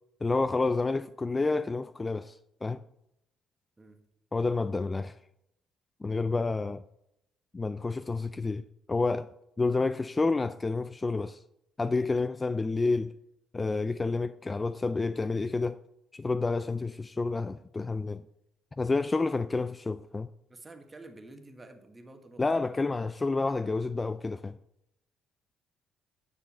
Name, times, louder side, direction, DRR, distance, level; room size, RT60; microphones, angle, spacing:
voice 1, 0.2-2.8 4.3-5.2 6.0-6.8 7.5-9.3 9.6-11.4 11.8-13.1 13.5-15.8 16.1-18.2 18.8-20.3 22.4-24.6, left 3 dB, 20° left, 0.3 m, -29 dB
voice 2, 20.5-22.4, right 2 dB, 20° right, 1.5 m, -49 dB
9.6 x 6.8 x 4.3 m
cardioid pair, 90°, 0 cm